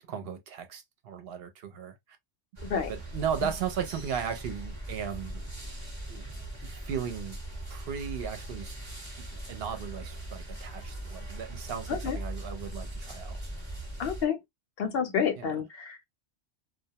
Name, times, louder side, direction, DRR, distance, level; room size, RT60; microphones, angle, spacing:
voice 1, 0.1-2.0 2.9-5.8 6.1-6.2 6.6-7.4 7.7-8.7 9.5-13.4 15.4-15.6, right 7 dB, 65° right, 0.7 m, -36 dB
sound 1, 2.6-14.3, right 1 dB, 15° right, 0.8 m, -40 dB
voice 2, 14.0-14.4 14.8-16.1, left 7 dB, 65° left, 0.7 m, -29 dB
2.2 x 2.1 x 2.7 m
omnidirectional pair, 1.2 m